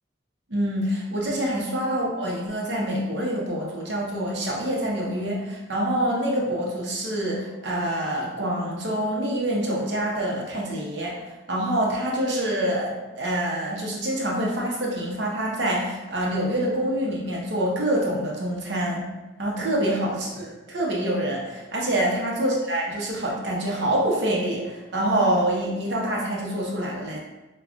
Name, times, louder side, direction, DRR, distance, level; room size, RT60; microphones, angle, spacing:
voice 1, 0.5-11.2 11.5-19.1 19.4-27.2, right 1 dB, 60° right, -3 dB, 0.7 m, -26 dB
4.9 x 2.3 x 2.5 m, 1.1 s
head